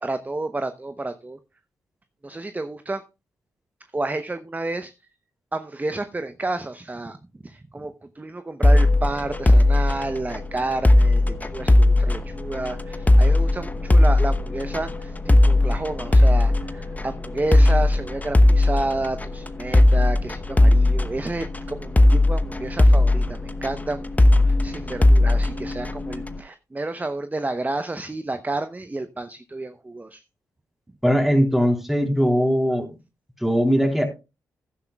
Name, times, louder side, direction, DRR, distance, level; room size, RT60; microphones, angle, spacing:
voice 1, 0.0-1.4 2.2-3.0 3.9-4.9 5.5-7.2 7.4-30.2, right 2 dB, 20° right, 10 dB, 0.8 m, -30 dB
sound 1, 8.6-26.4, left 1 dB, 20° left, 1.0 m, -18 dB
voice 2, 31.0-32.9 33.4-34.0, equal, 5° right, 4 dB, 3.5 m, -20 dB
15.5 x 10.5 x 2.3 m, 0.28 s
hypercardioid pair, 40°, 8 cm